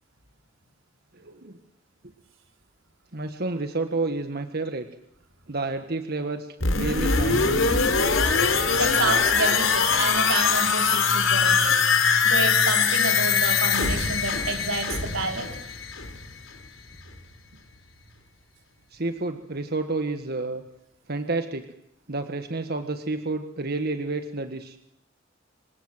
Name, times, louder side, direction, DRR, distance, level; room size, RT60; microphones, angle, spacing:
voice 1, 1.1-1.6 3.1-4.9 5.5-7.7 18.9-20.6 21.1-21.7 22.1-24.8, right 3 dB, 50° right, 7 dB, 1.6 m, -30 dB
sound 1, 6.6-16.3 16.6-16.7, left 5 dB, 80° left, 4.1 m, -22 dB
voice 2, 8.5-15.5, right 3 dB, 90° right, 4 dB, 4.8 m, -29 dB
27.5 x 25.5 x 7.9 m, 0.79 s
head